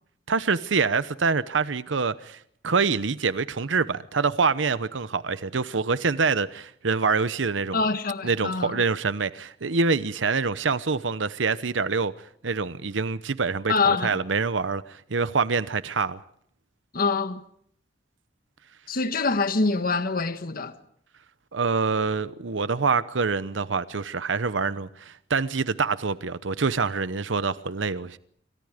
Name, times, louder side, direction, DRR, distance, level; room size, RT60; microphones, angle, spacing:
voice 1, 0.3-7.8 8.2-12.1 12.4-16.2 21.5-28.2, right 4 dB, 90° right, 0.9 m, -26 dB
voice 2, 7.7-8.8 13.7-14.2 16.9-17.4 18.9-20.7, left 4 dB, 50° left, 1.4 m, -25 dB
27.5 x 24.5 x 5.1 m
head